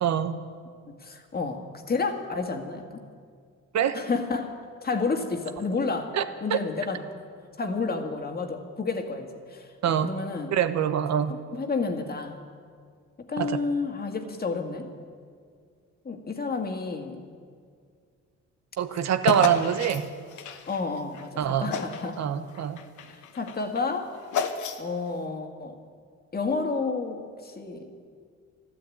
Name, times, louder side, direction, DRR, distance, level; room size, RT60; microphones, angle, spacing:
voice 1, 0.0-0.4 3.7-4.0 6.1-6.2 6.5-6.6 9.8-10.1 10.5-11.3 13.4-13.6 18.8-20.1 21.4-21.7 22.2-22.8, right 9 dB, 60° right, 10 dB, 1.0 m, -24 dB
voice 2, 0.9-2.9 3.9-4.6 4.8-6.2 6.4-7.1 7.6-10.5 11.3-12.4 13.2-14.9 16.1-17.3 20.7-22.2 23.1-24.1 24.8-25.8 26.3-28.1, left 4 dB, 30° left, 4 dB, 1.8 m, -30 dB
sound 1, 19.3-21.3 21.7-22.2 22.5-25.1, left 7 dB, 75° left, 1.2 m, -32 dB
12.5 x 12.5 x 8.5 m, 2.1 s
cardioid pair, 90°, 30 cm